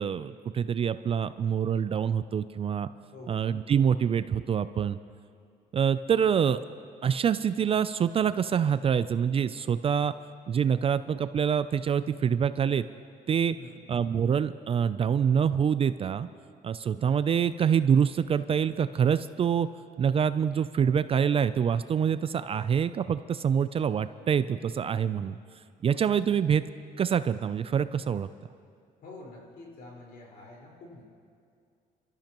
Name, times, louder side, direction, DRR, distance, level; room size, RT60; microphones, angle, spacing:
voice 1, 0.0-2.9 3.3-5.0 5.7-6.6 7.0-10.1 10.5-12.8 13.3-13.6 13.9-16.3 16.6-19.7 20.0-25.4 25.8-26.6 27.0-28.3, right 7 dB, 35° right, 13 dB, 0.4 m, -26 dB
voice 2, 3.1-3.5 13.6-13.9 29.0-31.0, left 2 dB, 60° left, -3 dB, 4.6 m, -47 dB
28.0 x 13.5 x 3.0 m, 2.3 s
cardioid pair, 110°, 17 cm